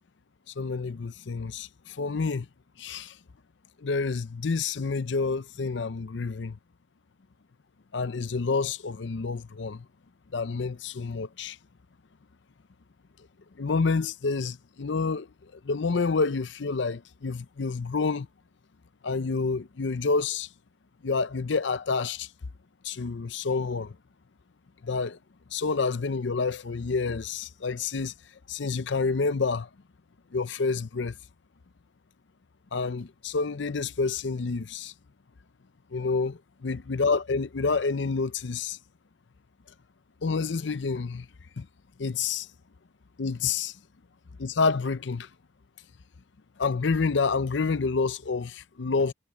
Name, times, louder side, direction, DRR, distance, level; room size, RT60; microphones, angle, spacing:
voice 1, 0.6-2.5 2.8-3.2 3.8-6.6 7.9-9.9 10.3-11.6 13.6-15.3 15.6-18.3 19.0-20.5 21.0-22.3 22.8-23.9 24.8-25.2 25.5-28.1 28.5-29.7 30.3-31.1 32.7-34.9 35.9-38.8 40.2-41.3 41.6-41.7 42.0-42.5 43.2-43.8 44.4-45.3 46.6-49.1, left 4 dB, 65° left, 0.6 m, -28 dB
head